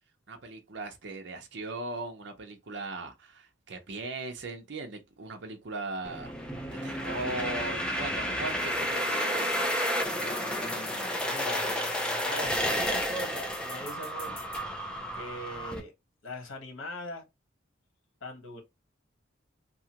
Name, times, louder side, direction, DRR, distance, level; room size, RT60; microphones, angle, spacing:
voice 1, 0.3-6.3 6.8-9.8, right 2 dB, 60° right, 0.6 m, -38 dB
sound 1, 6.0-15.8, equal, 5° left, 0.4 m, -31 dB
sound 2, 8.8-12.4, right 1 dB, 10° right, 1.1 m, -46 dB
sound 3, 9.4-14.6, left 4 dB, 40° left, 1.5 m, -46 dB
voice 2, 10.6-12.0 12.2-14.4 14.8-14.9 15.1-15.9 16.2-17.2 18.2-18.6, left 1 dB, 90° left, 1.1 m, -41 dB
2.8 x 2.4 x 2.8 m
head